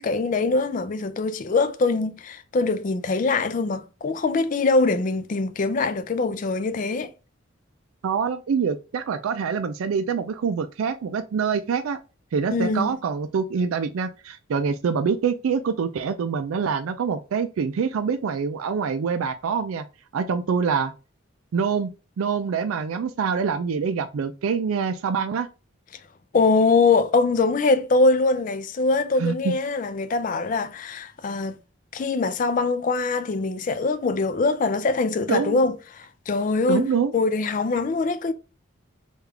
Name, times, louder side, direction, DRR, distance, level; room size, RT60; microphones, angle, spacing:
voice 1, 0.0-7.1 12.5-12.9 26.3-31.6 31.9-36.9 37.1-38.3, left 3 dB, 40° left, 0.3 m, -23 dB
voice 2, 8.0-12.0 12.3-19.8 20.1-20.9 21.5-21.9 22.2-25.5 29.2-29.6 35.3-35.6 36.7-37.1, right 6 dB, 85° right, 0.4 m, -25 dB
3.4 x 2.4 x 3.3 m
head